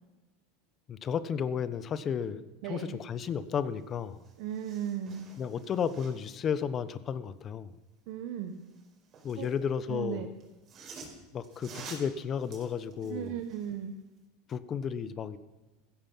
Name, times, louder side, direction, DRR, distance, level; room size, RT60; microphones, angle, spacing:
voice 1, 0.9-4.2 5.4-7.7 9.2-10.3 11.3-13.4 14.5-15.4, left 7 dB, 35° left, 14 dB, 1.1 m, -33 dB
voice 2, 2.6-3.0 4.4-5.3 8.1-8.6 9.3-9.5 9.9-10.3 13.0-13.9, right 10 dB, 65° right, 5 dB, 1.4 m, -36 dB
sound 1, 3.8-3.9 4.1-6.4 8.5-9.6 10.4-13.8 14.2-14.3, right 5 dB, 35° right, 5.1 m, -50 dB
16.0 x 15.0 x 5.7 m, 1.1 s
supercardioid pair, 120°, 0 cm